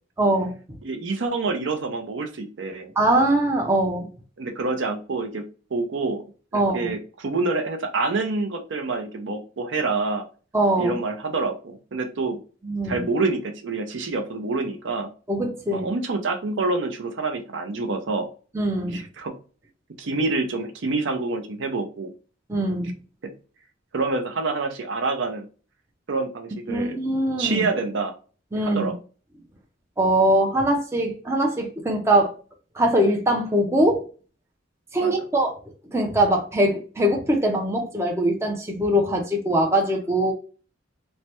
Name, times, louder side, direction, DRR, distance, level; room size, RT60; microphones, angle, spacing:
voice 1, 0.2-0.6 3.0-4.1 6.5-6.9 10.5-11.0 12.6-13.0 15.3-15.9 18.5-19.0 22.5-22.9 26.7-27.7 28.5-28.9 30.0-32.3 32.7-34.0 34.9-35.5 35.9-40.3, right 1 dB, 15° right, 0.5 m, -22 dB
voice 2, 0.8-2.9 4.4-6.2 6.5-10.2 10.8-12.4 12.8-15.1 15.7-18.3 18.9-19.4 20.0-22.1 23.2-23.3 23.9-25.5 26.1-27.0 27.4-28.1 28.6-28.9 35.0-35.1, right 3 dB, 65° right, 0.5 m, -27 dB
3.2 x 2.1 x 2.8 m
head